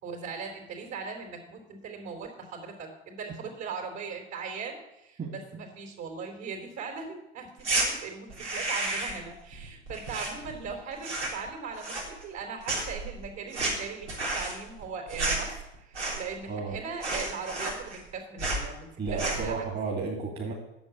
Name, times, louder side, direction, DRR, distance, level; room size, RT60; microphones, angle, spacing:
voice 1, 0.0-12.0 12.2-14.1 14.3-19.2 19.4-19.6, right 5 dB, 50° right, 2 dB, 4.0 m, -39 dB
voice 2, 5.2-5.6 16.5-16.8 19.0-20.5, right 4 dB, 30° right, -1 dB, 2.5 m, -33 dB
sound 1, 7.6-7.9 8.3-9.3 9.5-10.7 11.0-11.5 11.8-12.4 12.6-16.4 16.7-16.8 17.0-18.1 18.4-18.7 19.1-19.5, right 2 dB, 90° right, 3.5 m, -31 dB
8.8 x 7.2 x 8.5 m, 0.90 s
hypercardioid pair, 80°, 33 cm